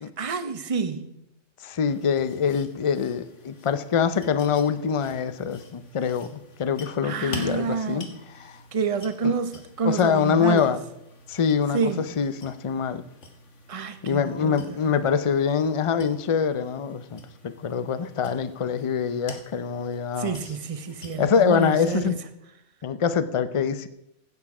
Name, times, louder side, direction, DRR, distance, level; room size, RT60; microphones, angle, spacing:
voice 1, 0.2-1.1 7.0-8.2 8.7-10.8 11.7-12.1 13.7-14.9 20.2-22.1, right 5 dB, 30° right, 0.8 m, -28 dB
voice 2, 1.6-8.1 8.4-8.5 9.2-9.3 9.8-10.8 11.3-11.8 12.2-13.0 14.0-20.4 21.2-22.2 22.8-23.9, left 7 dB, 40° left, 0.5 m, -24 dB
sound 1, 1.9-21.1, left 2 dB, 70° left, 1.9 m, -47 dB
16.5 x 7.3 x 4.8 m
omnidirectional pair, 1.3 m